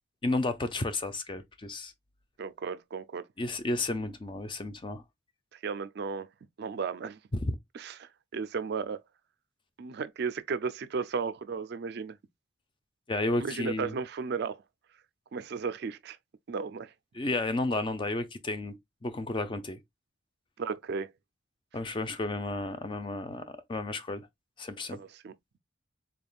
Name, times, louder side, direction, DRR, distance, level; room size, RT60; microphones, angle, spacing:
voice 1, 0.2-1.9 3.4-5.0 7.4-7.5 13.1-13.9 17.1-19.8 21.7-23.4 23.7-24.3 24.6-25.0, left 2 dB, 25° left, 0.4 m, -32 dB
voice 2, 2.4-3.3 5.5-6.3 6.6-7.2 7.7-9.0 9.8-12.2 13.4-14.6 15.3-16.2 16.5-16.9 20.6-21.1 25.0-25.3, right 5 dB, 55° right, 0.4 m, -34 dB
3.9 x 3.5 x 2.3 m
head